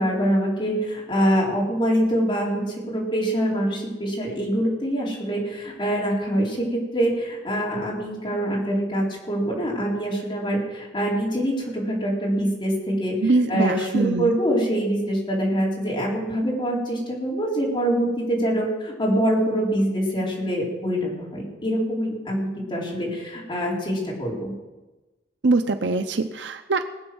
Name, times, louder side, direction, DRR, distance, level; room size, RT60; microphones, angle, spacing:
voice 1, 0.0-24.5, equal, 25° left, -4 dB, 4.3 m, -24 dB
voice 2, 13.2-14.3 25.4-26.9, right 3 dB, 85° right, 8 dB, 0.7 m, -23 dB
20.0 x 8.1 x 6.2 m, 1.1 s
head